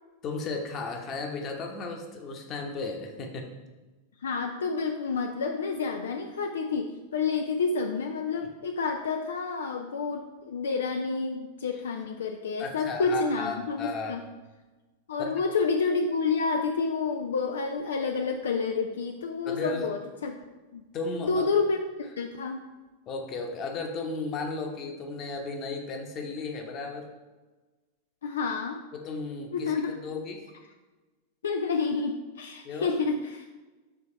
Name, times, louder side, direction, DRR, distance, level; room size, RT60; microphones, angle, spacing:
voice 1, 0.2-3.5 12.6-14.2 15.2-15.4 19.4-19.9 20.9-21.5 23.1-27.1 28.9-30.5 32.6-33.0, left 3 dB, 30° left, 2 dB, 1.0 m, -35 dB
voice 2, 4.2-14.2 15.1-20.3 20.7-20.8 21.2-22.6 28.2-28.8 29.5-29.9 31.4-33.5, left 4 dB, 65° left, 4 dB, 0.4 m, -29 dB
6.9 x 3.4 x 4.4 m, 1.2 s
figure-of-eight pair, 90°, 0 cm